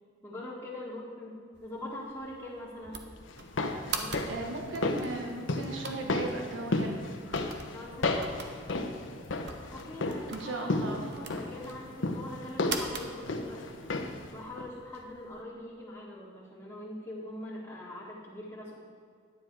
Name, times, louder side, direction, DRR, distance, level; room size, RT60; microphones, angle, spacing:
voice 1, 0.2-3.1 3.9-4.5 4.8-5.0 7.7-8.3 9.7-13.9 14.3-18.8, left 1 dB, 10° left, -10 dB, 1.9 m, -43 dB
sound 1, 1.5-15.4, right 5 dB, 60° right, 0.9 m, -44 dB
sound 2, 3.3-14.3 14.6-14.7, left 2 dB, 80° left, 0.9 m, -34 dB
voice 2, 4.3-7.0 10.3-11.0, right 2 dB, 90° right, 2 dB, 1.2 m, -37 dB
10.5 x 9.5 x 4.7 m, 2.2 s
head